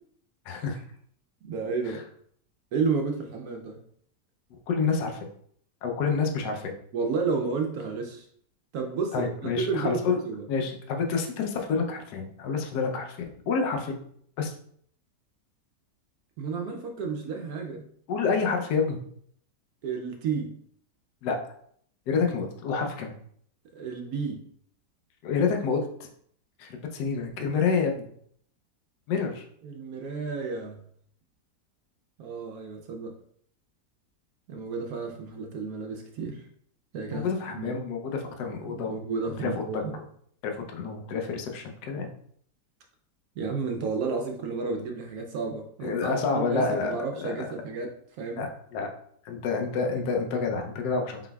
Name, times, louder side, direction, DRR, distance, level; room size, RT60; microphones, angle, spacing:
voice 1, 0.5-0.8 1.9-2.0 4.7-5.3 5.8-6.7 9.1-10.2 10.5-13.2 13.5-13.9 14.4-14.5 18.1-19.0 21.2-21.4 22.1-23.1 25.2-25.9 26.6-27.9 29.1-29.5 37.1-38.9 39.4-39.8 40.4-42.1 45.8-47.5 48.4-48.9 49.2-51.2, left 5 dB, 75° left, 3 dB, 1.2 m, -28 dB
voice 2, 1.4-2.0 2.7-3.8 6.9-8.3 8.7-10.4 16.4-17.8 19.8-20.5 23.7-24.4 29.6-30.8 32.2-33.1 34.5-36.4 36.9-37.3 37.6-37.8 38.7-39.9 43.4-48.5, right 4 dB, 70° right, 3 dB, 1.0 m, -32 dB
4.9 x 3.8 x 2.3 m, 0.64 s
omnidirectional pair, 1.8 m